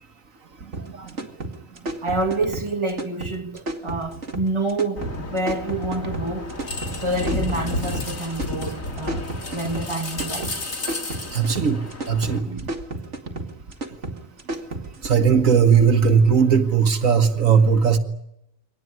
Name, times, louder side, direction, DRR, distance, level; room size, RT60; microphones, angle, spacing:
sound 1, 0.7-15.2, right 2 dB, 60° right, 2.6 m, -33 dB
voice 1, 2.0-6.5 7.0-10.6 12.5-12.6, right 2 dB, 20° right, 2.4 m, -27 dB
sound 2, 5.0-12.4, left 2 dB, 80° left, 3.8 m, -31 dB
voice 2, 11.3-12.5 15.0-18.0, right 6 dB, 80° right, 2.0 m, -18 dB
24.0 x 19.0 x 10.0 m
omnidirectional pair, 1.4 m